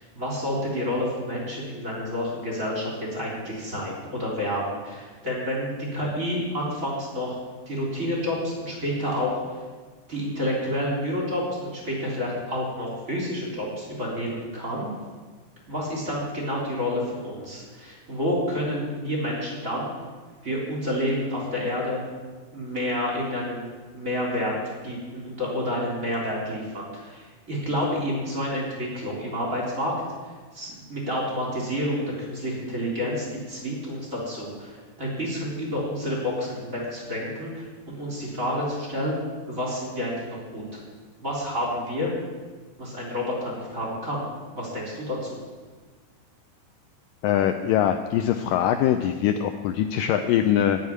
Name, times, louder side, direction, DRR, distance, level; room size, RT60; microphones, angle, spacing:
voice 1, 0.0-7.4 7.7-9.4 10.1-14.9 15.7-19.9 20.4-22.0 22.5-23.7 23.9-24.5 24.8-29.9 30.5-39.2 39.5-40.6 41.2-42.1 42.8-44.2 44.5-45.4, left 1 dB, 20° right, -3 dB, 3.7 m, -29 dB
voice 2, 47.2-50.8, left 10 dB, 80° left, 8 dB, 2.1 m, -22 dB
14.5 x 6.6 x 9.6 m, 1.4 s
omnidirectional pair, 4.3 m